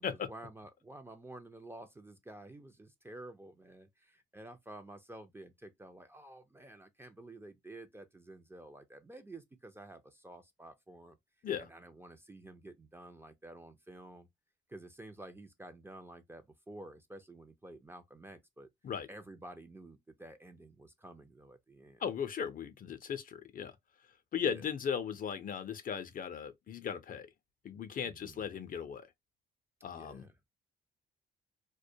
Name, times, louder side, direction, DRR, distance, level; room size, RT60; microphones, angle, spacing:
voice 1, 0.0-11.2 11.6-14.3 14.7-18.7 19.1-22.0 24.4-24.7 28.0-28.5 29.9-30.4, right 1 dB, 10° right, 0.4 m, -51 dB
voice 2, 22.0-23.7 24.3-27.3 27.6-29.1 29.8-30.3, left 7 dB, 45° left, 0.5 m, -37 dB
2.2 x 2.1 x 2.6 m
cardioid pair, 90°, 20 cm